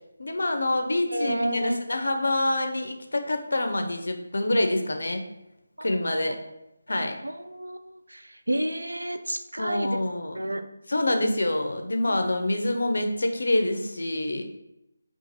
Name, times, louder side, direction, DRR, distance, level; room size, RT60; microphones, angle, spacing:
voice 1, 0.2-5.2 5.8-6.4 6.9-7.2 9.6-10.4 10.9-14.4, left 1 dB, 65° left, 5 dB, 0.5 m, -26 dB
voice 2, 1.1-1.8 6.1-6.3 6.9-8.2 8.5-9.9 10.4-10.6 12.0-12.2, right 1 dB, 80° right, 8 dB, 0.3 m, -30 dB
2.6 x 2.5 x 4.0 m, 0.90 s
figure-of-eight pair, 155°, 0 cm